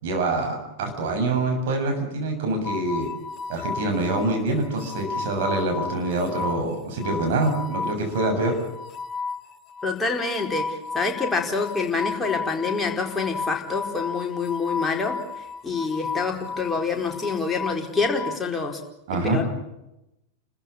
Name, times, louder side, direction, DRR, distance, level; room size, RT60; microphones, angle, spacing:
voice 1, 0.0-3.1 3.5-8.5 19.1-19.4, right 2 dB, 55° right, 3 dB, 7.3 m, -25 dB
sound 1, 2.6-18.4, left 4 dB, 30° left, 1.0 m, -33 dB
voice 2, 9.8-15.2 15.6-18.8 19.1-19.4, left 4 dB, 10° left, 1 dB, 4.6 m, -26 dB
30.0 x 15.0 x 8.7 m, 0.89 s
figure-of-eight pair, 90°, 0 cm